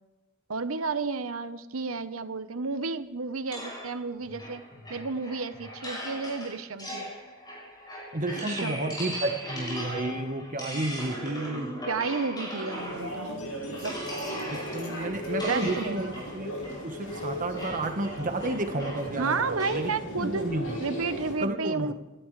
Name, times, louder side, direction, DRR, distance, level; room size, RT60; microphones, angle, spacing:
voice 1, 0.5-4.6 4.9-7.1 8.4-8.8 11.9-13.4 13.7-13.9 14.9-15.0 15.4-16.1 19.2-20.5 20.8-21.9, right 4 dB, 80° right, 11 dB, 1.0 m, -32 dB
sound 1, 3.5-13.3 13.7-20.0, equal, 20° left, 6.9 m, -39 dB
voice 2, 8.1-11.8 14.5-16.6 16.8-19.9 20.2-20.8 21.4-21.9, right 2 dB, 40° right, 5 dB, 1.4 m, -31 dB
sound 2, 12.7-21.3, equal, 90° left, 5.8 m, -37 dB
28.0 x 13.5 x 3.3 m, 1.2 s
head